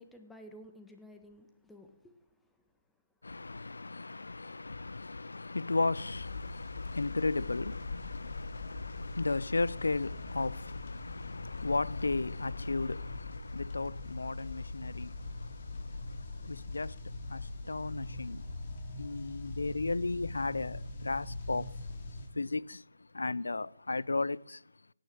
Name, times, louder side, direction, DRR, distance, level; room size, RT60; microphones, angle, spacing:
voice 1, 0.0-2.1, equal, 5° left, 1.7 m, -52 dB
voice 2, 3.2-24.6, left 3 dB, 75° left, 0.6 m, -35 dB
sound 1, 6.1-22.3, left 3 dB, 40° left, 3.5 m, -42 dB
16.5 x 10.0 x 7.9 m
figure-of-eight pair, 150°, 0 cm